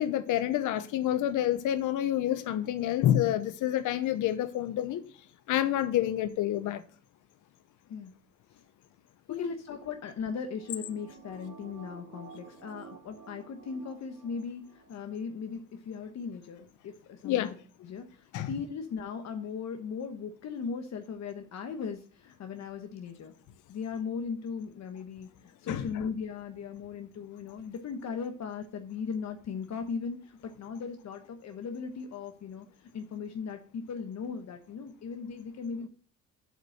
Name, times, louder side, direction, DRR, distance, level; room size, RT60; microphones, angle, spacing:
voice 1, 0.0-5.0 5.5-6.8 9.3-9.5 17.2-17.5 18.3-18.5 25.7-25.9, left 12 dB, 85° left, 0.9 m, -28 dB
voice 2, 9.3-23.3 23.7-32.7 32.9-35.9, left 6 dB, 60° left, 1.2 m, -38 dB
sound 1, 10.2-14.9 15.3-15.4, right 6 dB, 55° right, 3.1 m, -51 dB
7.8 x 5.3 x 6.4 m
cardioid pair, 90°, 30 cm